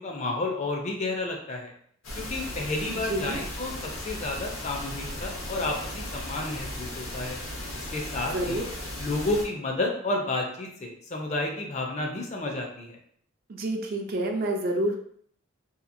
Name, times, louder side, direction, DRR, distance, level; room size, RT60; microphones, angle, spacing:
voice 1, 0.0-1.7 2.2-3.7 4.0-7.4 7.7-8.6 9.0-13.0, left 2 dB, 35° left, 1 dB, 0.4 m, -31 dB
sound 1, 2.0-9.5, left 1 dB, 90° left, 0.9 m, -36 dB
voice 2, 3.1-3.4 8.3-8.7 13.5-14.9, right 1 dB, 45° right, 2 dB, 0.4 m, -28 dB
2.8 x 2.4 x 2.5 m, 0.63 s
head